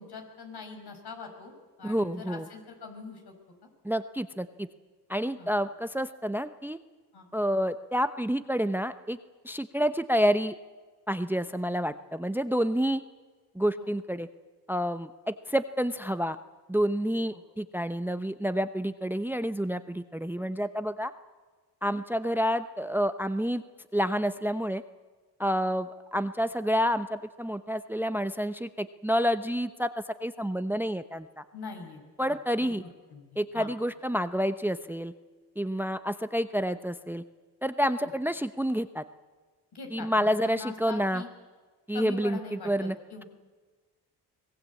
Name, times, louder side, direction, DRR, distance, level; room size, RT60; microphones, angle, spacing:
voice 1, 0.0-1.5 1.8-3.3 3.6-3.7 5.4-5.5 7.1-7.3 13.8-13.9 17.3-17.4 31.5-32.0 32.3-32.7 33.1-33.7 38.0-38.1 39.7-41.3 41.9-43.3, left 4 dB, 65° left, 4 dB, 5.6 m, -43 dB
voice 2, 1.8-2.5 3.8-4.7 5.1-6.8 7.3-9.2 9.4-10.5 11.1-13.0 13.5-14.3 14.7-16.4 16.7-21.1 21.8-23.6 23.9-24.8 25.4-31.4 32.2-32.8 33.4-35.1 35.6-37.2 37.6-39.0 39.9-41.2 41.9-42.9, equal, 5° right, 12 dB, 0.9 m, -29 dB
23.5 x 19.0 x 8.5 m, 1.4 s
cardioid pair, 65°, 42 cm